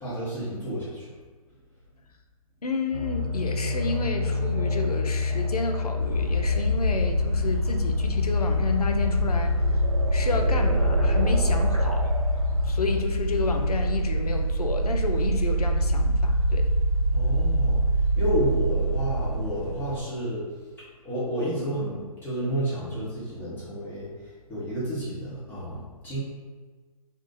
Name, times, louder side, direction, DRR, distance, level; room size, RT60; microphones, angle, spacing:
voice 1, 0.0-1.1 17.1-17.8 18.2-20.5 21.0-26.2, right 1 dB, 10° left, -10 dB, 1.0 m, -30 dB
voice 2, 2.6-9.8 10.1-12.1 12.6-16.7, left 3 dB, 85° left, 4 dB, 0.5 m, -31 dB
sound 1, 2.9-13.0, left 4 dB, 70° right, 0.6 m, -27 dB
sound 2, 6.0-20.0, right 2 dB, 65° left, 1.2 m, -25 dB
2.7 x 2.4 x 3.7 m, 1.4 s
figure-of-eight pair, 130°, 19 cm